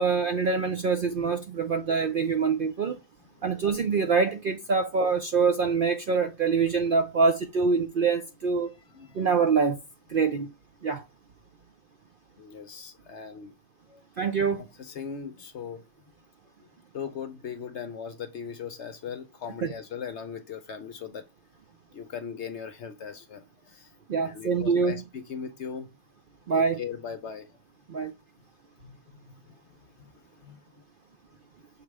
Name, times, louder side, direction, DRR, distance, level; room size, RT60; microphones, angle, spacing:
voice 1, 0.0-2.9 3.4-8.7 9.1-9.8 10.1-10.5 10.8-11.0 14.2-14.6 24.1-24.9 26.5-26.8 27.9-28.1, right 5 dB, 65° right, 0.5 m, -25 dB
voice 2, 8.9-9.3 12.4-13.5 13.9-14.0 14.8-15.8 16.6-16.7 16.9-21.2 21.9-23.9 24.2-25.9 26.5-27.6 28.8-30.6, left 7 dB, 60° left, 0.8 m, -39 dB
6.5 x 3.1 x 4.7 m
omnidirectional pair, 1.5 m